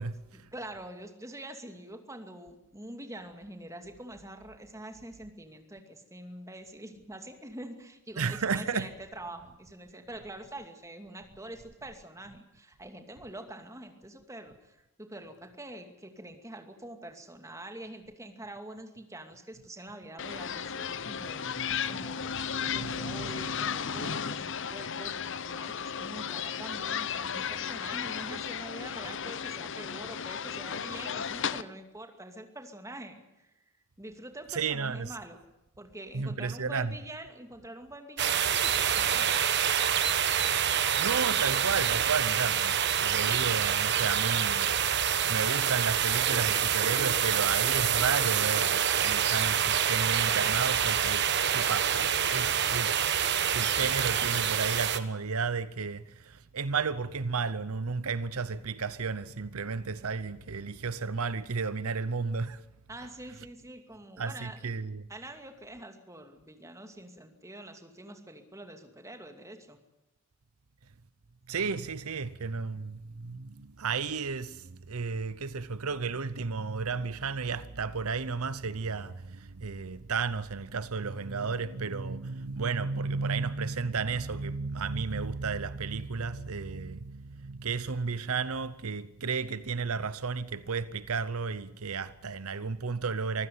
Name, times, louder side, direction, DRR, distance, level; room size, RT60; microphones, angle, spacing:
voice 1, 0.0-0.4 8.2-8.9 21.6-22.0 22.6-23.3 34.5-35.1 36.1-37.0 41.0-44.7 45.3-52.9 53.5-62.6 64.2-65.1 71.5-93.5, right 5 dB, 80° right, 0.8 m, -33 dB
voice 2, 0.5-22.5 22.7-33.5 34.0-35.4 35.8-39.3 62.9-64.6 65.1-69.8, right 1 dB, 15° right, 2.5 m, -45 dB
sound 1, 20.2-31.6, left 7 dB, 55° left, 0.8 m, -34 dB
sound 2, 38.2-55.0, right 8 dB, 50° right, 1.3 m, -27 dB
24.5 x 15.5 x 9.5 m
head